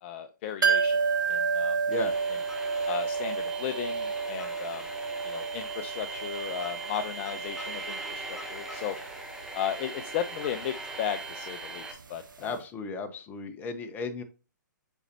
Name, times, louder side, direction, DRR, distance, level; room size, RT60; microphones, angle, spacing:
voice 1, 0.0-1.0 1.3-1.8 2.9-4.8 5.2-9.0 9.5-12.6, left 9 dB, 35° left, 10 dB, 0.5 m, -35 dB
sound 1, 0.6-12.2 12.5-12.6, right 5 dB, 85° right, 1.1 m, -32 dB
sound 2, 1.9-11.9, right 3 dB, 5° right, 1.1 m, -40 dB
voice 2, 12.4-14.2, left 3 dB, 20° left, 8 dB, 0.8 m, -35 dB
8.0 x 4.2 x 2.8 m, 0.34 s
hypercardioid pair, 135°, 11 cm